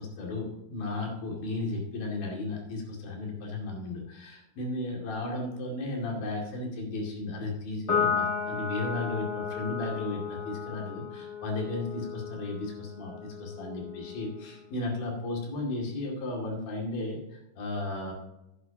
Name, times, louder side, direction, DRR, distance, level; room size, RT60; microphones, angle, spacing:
voice 1, 0.0-18.1, left 2 dB, 50° left, -1 dB, 3.7 m, -34 dB
Piano, 7.9-14.6, left 6 dB, 25° left, 1.6 m, -34 dB
14.0 x 10.5 x 2.9 m, 0.92 s
omnidirectional pair, 5.9 m